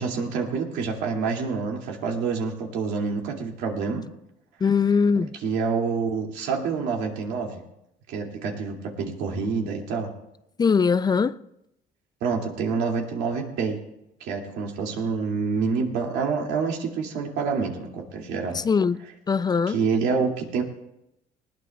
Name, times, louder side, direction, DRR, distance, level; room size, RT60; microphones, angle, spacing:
voice 1, 0.0-4.0 5.4-7.6 8.1-10.1 12.2-13.8 14.2-18.6 19.7-20.6, right 5 dB, 90° right, 2.5 m, -27 dB
voice 2, 4.6-5.3 10.6-11.4 18.5-19.0 19.3-19.8, left 5 dB, 25° left, 0.4 m, -21 dB
19.5 x 17.0 x 2.3 m
cardioid pair, 110°, 17 cm